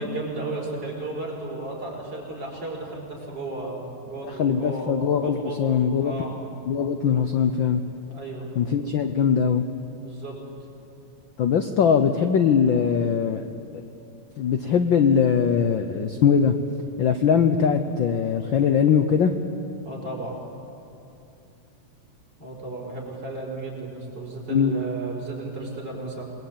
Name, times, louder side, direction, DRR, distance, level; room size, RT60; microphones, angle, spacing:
voice 1, 0.0-6.4 8.1-8.5 8.8-8.9 10.0-10.3 19.8-20.4 22.4-26.3, right 2 dB, 35° right, -3 dB, 6.0 m, -34 dB
voice 2, 4.4-6.1 6.7-7.8 8.6-9.6 11.4-13.5 13.7-13.8 14.4-16.5 17.0-19.3 24.5-24.7, left 7 dB, 75° left, 7 dB, 1.1 m, -21 dB
27.5 x 20.5 x 8.8 m, 2.7 s
omnidirectional pair, 3.4 m